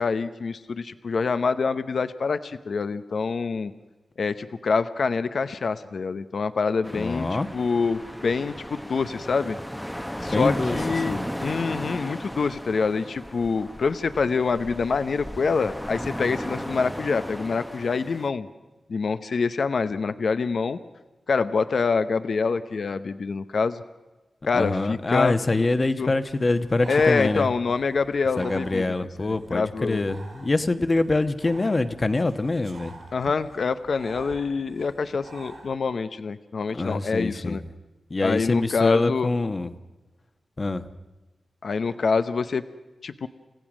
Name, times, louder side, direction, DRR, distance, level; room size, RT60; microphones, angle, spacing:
voice 1, 0.0-3.7 4.2-9.6 10.2-18.5 18.9-20.8 21.3-23.8 24.5-26.1 26.9-28.8 29.2-30.1 33.1-37.6 38.2-39.3 41.6-42.6 43.0-43.3, left 4 dB, 70° left, 11 dB, 0.7 m, -26 dB
sound 1, 6.8-18.3, equal, 5° left, 0.9 m, -35 dB
voice 2, 7.0-7.5 10.3-10.8 11.1-11.2 24.5-27.5 28.4-32.9 36.7-37.6 38.1-39.7 40.6-40.8, left 2 dB, 40° left, 10 dB, 1.2 m, -25 dB
Breathing, 26.2-35.7, right 3 dB, 65° right, 5.6 m, -46 dB
29.5 x 15.5 x 6.2 m, 1.1 s
cardioid pair, 55°, 0 cm